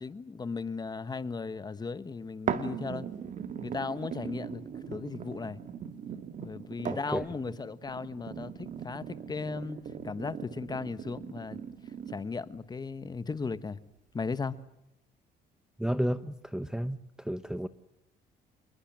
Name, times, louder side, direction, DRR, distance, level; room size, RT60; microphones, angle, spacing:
voice 1, 0.0-3.1 3.6-5.6 6.4-9.8 10.0-11.6 12.1-13.8 14.1-14.6, left 4 dB, 25° left, 1.3 m, -36 dB
sound 1, 2.5-12.5 13.0-13.1, right 7 dB, 50° right, 2.1 m, -39 dB
voice 2, 15.8-17.0 17.3-17.7, equal, 5° right, 0.8 m, -31 dB
28.0 x 21.5 x 7.5 m
cardioid pair, 110°, 17 cm